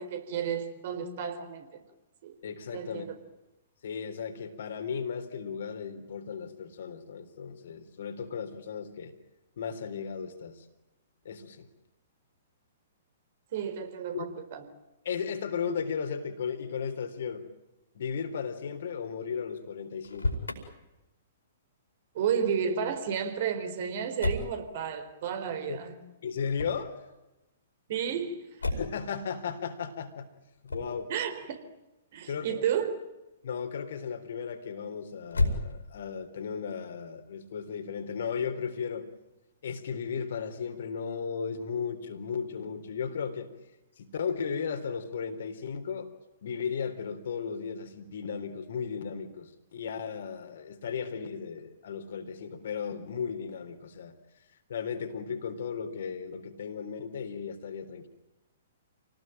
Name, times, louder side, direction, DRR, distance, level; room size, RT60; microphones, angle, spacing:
voice 1, 0.0-1.7 2.2-2.3 2.7-3.1 13.5-14.6 22.1-26.0 27.9-28.4 31.1-31.6 32.1-33.0, right 7 dB, 45° right, 8 dB, 4.3 m, -32 dB
voice 2, 2.4-3.0 3.8-9.1 9.6-10.6 11.3-11.7 14.1-14.3 15.1-17.4 17.9-20.3 25.7-25.8 26.2-27.0 28.7-30.3 30.6-31.1 32.3-32.6 33.4-39.1 39.6-43.5 44.0-46.1 46.4-54.1 54.7-58.1, left 6 dB, 55° left, 8 dB, 3.6 m, -35 dB
Motor vehicle (road), 19.9-20.6 24.2-24.6 26.5-26.9 28.6-29.0 30.6-31.0 35.2-36.1, left 2 dB, 75° left, 5.1 m, -31 dB
29.0 x 19.0 x 9.0 m, 1.0 s
figure-of-eight pair, 115°, 0 cm